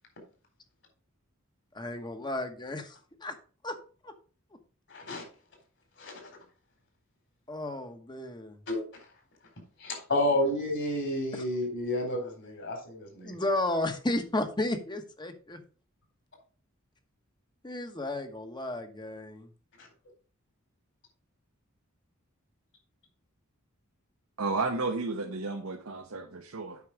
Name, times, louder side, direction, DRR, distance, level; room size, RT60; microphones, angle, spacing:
voice 1, 1.7-3.0 3.2-3.4 3.6-3.8 4.0-4.1 7.5-8.6 11.3-11.4 13.2-15.6 17.6-19.5, left 1 dB, 20° left, 7 dB, 1.1 m, -33 dB
voice 2, 4.9-5.2 6.0-6.1 8.7-8.8 9.8-13.3, left 1 dB, 60° left, 2 dB, 4.1 m, -30 dB
voice 3, 24.4-26.8, right 3 dB, 85° right, 3 dB, 1.0 m, -32 dB
8.4 x 5.8 x 4.8 m, 0.38 s
head